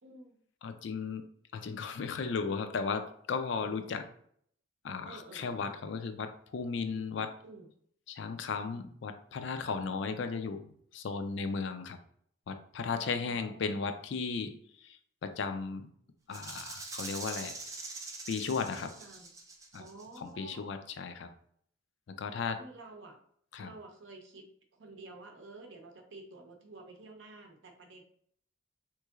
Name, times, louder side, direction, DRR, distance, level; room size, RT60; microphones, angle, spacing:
voice 1, 0.0-0.4 3.6-4.0 5.0-5.7 7.4-7.7 10.0-10.2 12.9-13.8 18.7-19.3 19.8-20.7 22.6-23.2 23.6-24.5 24.7-28.0, right 2 dB, 65° right, 3 dB, 0.7 m, -51 dB
voice 2, 0.6-1.2 1.5-4.0 4.8-7.3 8.1-12.0 12.5-15.9 16.3-17.6 18.3-18.9 19.7-19.8 20.2-21.3 22.1-22.6 23.5-23.7, left 5 dB, 65° left, 8 dB, 0.4 m, -35 dB
Rattle (instrument), 16.3-20.2, right 3 dB, 15° right, 0.4 m, -43 dB
3.7 x 3.0 x 2.3 m, 0.64 s
head